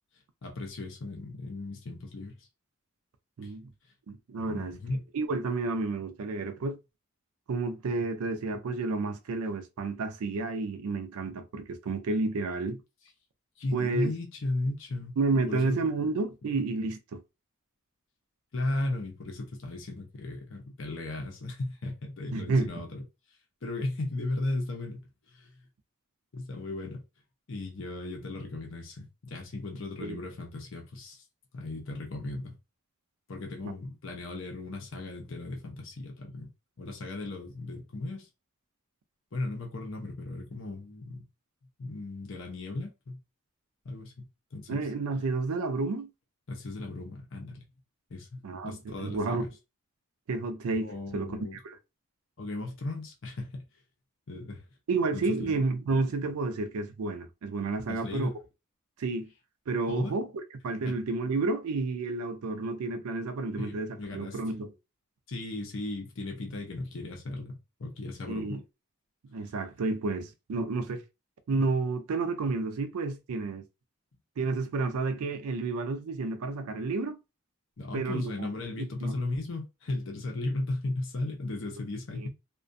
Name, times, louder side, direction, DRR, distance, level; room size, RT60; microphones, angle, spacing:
voice 1, 0.4-2.4 3.4-3.5 4.5-5.0 13.6-15.2 15.5-15.8 16.4-16.5 18.5-23.0 23.6-25.5 26.3-27.0 27.5-31.2 31.5-32.5 33.3-36.5 36.8-38.3 39.3-41.2 41.8-43.2 43.8-44.8 46.5-47.6 48.1-49.5 50.8-51.6 52.4-53.6 54.3-54.6 55.1-55.6 57.9-58.4 59.9-60.1 60.9-61.0 63.6-64.4 65.3-68.6 77.8-82.3, left 2 dB, 60° left, 0.6 m, -36 dB
voice 2, 3.4-3.7 4.1-4.8 5.1-6.8 7.5-12.8 13.7-14.1 15.2-17.2 22.3-22.7 30.0-30.2 33.6-33.7 44.7-46.1 48.4-49.5 50.3-51.8 54.9-58.3 59.0-59.3 59.7-60.3 60.6-64.7 68.3-68.6 69.3-71.0 71.5-73.6 74.4-77.2 77.9-78.5 78.8-79.2 82.1-82.3, right 3 dB, 85° right, 0.4 m, -31 dB
2.4 x 2.2 x 2.5 m
head